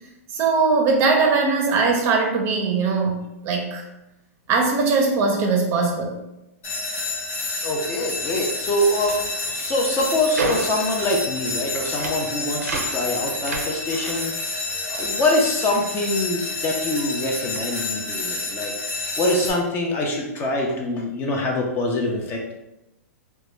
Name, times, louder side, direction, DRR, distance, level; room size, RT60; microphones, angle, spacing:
voice 1, 0.3-3.8 4.5-6.2, right 4 dB, 30° right, 1 dB, 0.5 m, -20 dB
sound 1, 6.6-19.5, left 2 dB, 55° left, 1.0 m, -29 dB
voice 2, 7.6-14.3 14.9-22.5, left 1 dB, 25° left, 0 dB, 0.4 m, -24 dB
sound 2, 8.7-16.2 16.5-18.0, right 3 dB, 90° right, 0.4 m, -34 dB
2.1 x 2.1 x 3.0 m, 0.93 s
hypercardioid pair, 130°, 8 cm